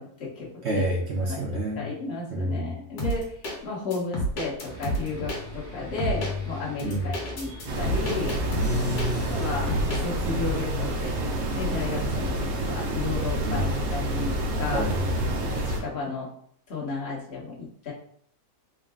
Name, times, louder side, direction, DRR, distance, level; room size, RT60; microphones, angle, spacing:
voice 1, 0.0-0.9 1.3-3.4 3.6-8.4 9.1-9.7 10.0-11.2 11.5-14.3 14.6-14.8 15.4-16.3 16.7-17.9, left 3 dB, 40° left, -5 dB, 1.3 m, -33 dB
voice 2, 0.6-1.8 2.3-2.7 6.8-7.1 8.6-9.4 13.4-13.6 14.7-15.3, right 1 dB, 50° right, -3 dB, 0.8 m, -28 dB
sound 1, 3.0-3.5 3.9-5.4 6.0-6.3 6.8-9.4 9.7-10.0, right 1 dB, 65° left, 1.5 m, -29 dB
sound 2, 4.7-11.0, left 3 dB, 5° left, 0.8 m, -39 dB
sound 3, 7.7-15.8, right 1 dB, 85° right, 1.5 m, -28 dB
3.8 x 2.3 x 3.7 m, 0.63 s
omnidirectional pair, 2.0 m